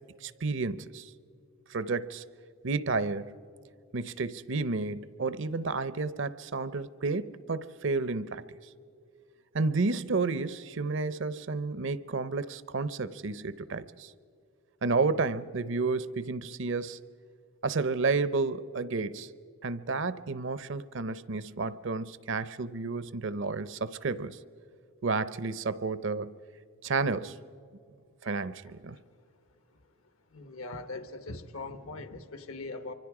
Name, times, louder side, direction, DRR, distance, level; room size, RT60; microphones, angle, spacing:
voice 1, 0.2-1.1 1.7-2.2 2.6-3.4 3.9-8.4 9.5-14.1 14.8-17.0 17.6-19.3 19.6-24.4 25.0-26.4 26.8-27.4 28.2-29.0, right 3 dB, 60° right, 0.6 m, -31 dB
voice 2, 30.3-32.9, left 2 dB, 75° left, 1.3 m, -40 dB
26.5 x 24.5 x 4.9 m
head